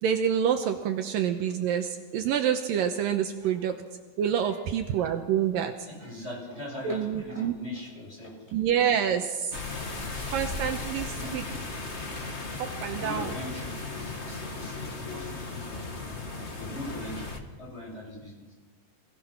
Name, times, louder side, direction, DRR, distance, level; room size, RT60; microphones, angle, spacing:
voice 1, 0.0-3.8 4.2-5.7 6.8-7.5 8.5-9.6 10.3-11.4 12.6-13.3, right 8 dB, 75° right, 5 dB, 2.5 m, -27 dB
voice 2, 5.9-8.5 10.6-10.7 11.1-11.6 13.0-15.9 16.5-18.4, left 1 dB, 15° left, -3 dB, 7.7 m, -41 dB
sound 1, 9.5-17.4, left 3 dB, 40° left, 0.9 m, -36 dB
27.0 x 18.5 x 5.9 m, 1.3 s
omnidirectional pair, 4.3 m